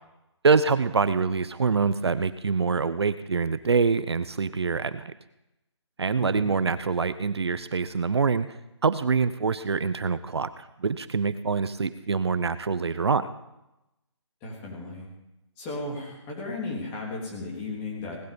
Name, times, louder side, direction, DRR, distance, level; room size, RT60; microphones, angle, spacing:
voice 1, 0.4-5.1 6.0-8.6 8.8-13.3, right 5 dB, 60° right, 14 dB, 0.8 m, -25 dB
voice 2, 6.2-6.5 14.4-15.1 15.6-18.2, left 2 dB, 15° left, -2 dB, 3.2 m, -35 dB
18.5 x 12.0 x 5.3 m, 0.92 s
hypercardioid pair, 170°, 15 cm